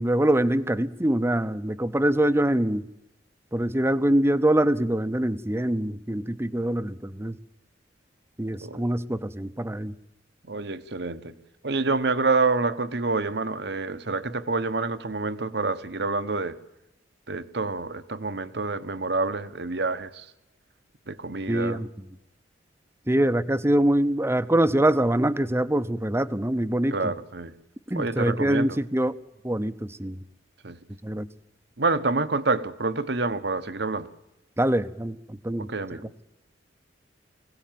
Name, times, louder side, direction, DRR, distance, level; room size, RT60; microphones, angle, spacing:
voice 1, 0.0-2.9 3.5-7.4 8.4-9.9 21.5-21.9 23.1-27.1 27.9-29.1 29.4-30.2 31.0-31.3 34.6-36.1, right 1 dB, 15° right, 12 dB, 0.8 m, -24 dB
voice 2, 10.4-11.3 11.6-16.6 17.3-20.3 21.1-21.8 26.9-27.5 28.0-28.7 30.6-30.8 31.8-34.1 35.7-36.0, right 3 dB, 65° right, 12 dB, 1.2 m, -27 dB
24.5 x 17.5 x 9.3 m, 0.91 s
head